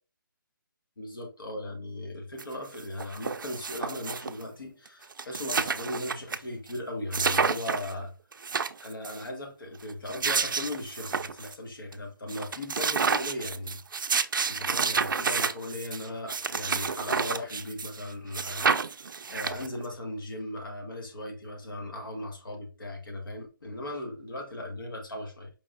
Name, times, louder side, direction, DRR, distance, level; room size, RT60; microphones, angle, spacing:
voice 1, 1.0-8.1 8.8-13.8 14.3-25.5, left 1 dB, 70° left, 1.3 m, -38 dB
sound 1, 2.4-2.5 2.7-4.4 4.9-5.0 5.1-6.4 6.7-6.8 7.1-7.9 8.3-9.2 9.9-11.5 11.9-12.0 12.3-18.0 18.3-19.9, right 5 dB, 70° right, 0.4 m, -29 dB
4.8 x 3.4 x 2.5 m
hypercardioid pair, 175°, 11 cm